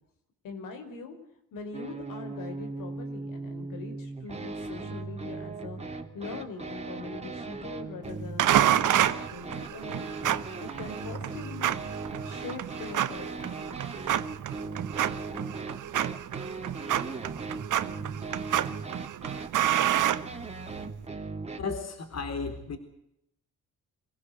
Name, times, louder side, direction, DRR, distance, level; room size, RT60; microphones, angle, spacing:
voice 1, 0.4-1.2 1.5-5.8 6.1-10.1 10.6-11.8 12.2-14.2, left 4 dB, 85° left, 5 dB, 5.3 m, -42 dB
sound 1, 1.7-21.6, right 3 dB, 20° right, 3.3 m, -38 dB
sound 2, 8.4-20.9, right 11 dB, 70° right, 1.2 m, -29 dB
voice 2, 21.6-22.8, left 4 dB, 55° left, 6 dB, 3.9 m, -34 dB
25.5 x 16.0 x 8.1 m, 0.79 s
cardioid pair, 85°, 32 cm